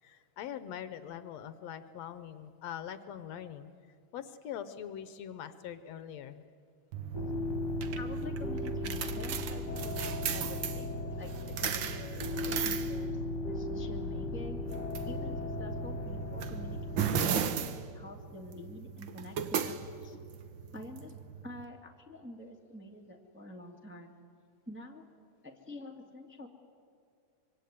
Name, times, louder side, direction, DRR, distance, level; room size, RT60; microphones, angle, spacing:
voice 1, 0.0-3.7 4.1-6.4, left 9 dB, 70° left, 12 dB, 1.9 m, -43 dB
sound 1, 6.9-21.6, right 8 dB, 60° right, 1.3 m, -37 dB
sound 2, 7.1-17.2, left 3 dB, 40° left, 2.2 m, -37 dB
voice 2, 7.9-13.1 13.5-14.6 15.0-20.2 20.7-21.1 21.4-24.1 24.7-25.0 25.4-26.5, left 1 dB, 5° right, 1 dB, 1.4 m, -47 dB
24.5 x 24.0 x 9.5 m, 2.3 s
omnidirectional pair, 3.3 m